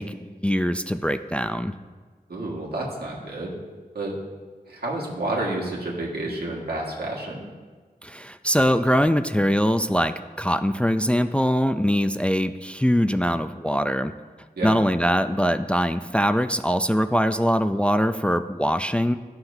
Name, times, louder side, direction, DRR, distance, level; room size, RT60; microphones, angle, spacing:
voice 1, 0.0-1.7 8.0-14.1 14.6-19.1, equal, 5° left, 10 dB, 0.3 m, -22 dB
voice 2, 2.3-3.6 3.9-4.1 4.7-7.4 14.6-14.8, right 2 dB, 85° right, -4 dB, 1.6 m, -30 dB
11.5 x 5.8 x 2.7 m, 1.5 s
cardioid pair, 40°, 16 cm